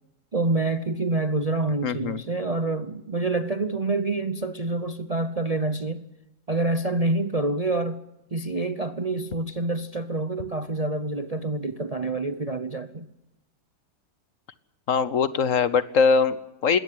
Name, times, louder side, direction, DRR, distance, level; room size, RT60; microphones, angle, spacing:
voice 1, 0.3-6.0 6.5-8.0 8.3-13.1, right 2 dB, 35° right, 0.7 m, -27 dB
voice 2, 1.8-2.2 14.9-16.8, left 5 dB, 60° left, 1.2 m, -22 dB
21.0 x 17.5 x 9.3 m
omnidirectional pair, 1.7 m